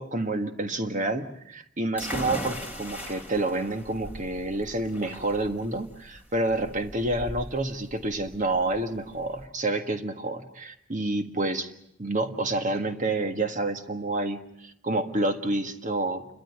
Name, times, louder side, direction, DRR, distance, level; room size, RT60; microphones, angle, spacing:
voice 1, 0.0-11.7 12.0-16.3, right 2 dB, 35° right, 7 dB, 1.6 m, -29 dB
sound 1, 2.0-9.4, equal, 10° right, 3.2 m, -39 dB
29.0 x 13.0 x 9.5 m, 0.75 s
head